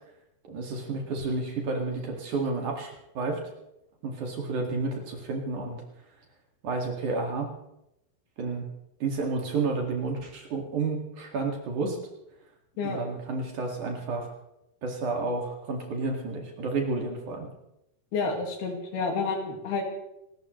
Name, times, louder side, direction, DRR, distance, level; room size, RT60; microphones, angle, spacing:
voice 1, 0.5-3.4 4.0-5.8 6.6-7.5 8.4-8.7 9.0-12.0 12.8-14.3 14.8-17.5, right 3 dB, 55° right, 1 dB, 3.4 m, -31 dB
voice 2, 18.1-19.8, left 4 dB, 70° left, 2 dB, 3.9 m, -29 dB
28.5 x 13.0 x 3.2 m, 0.84 s
omnidirectional pair, 4.6 m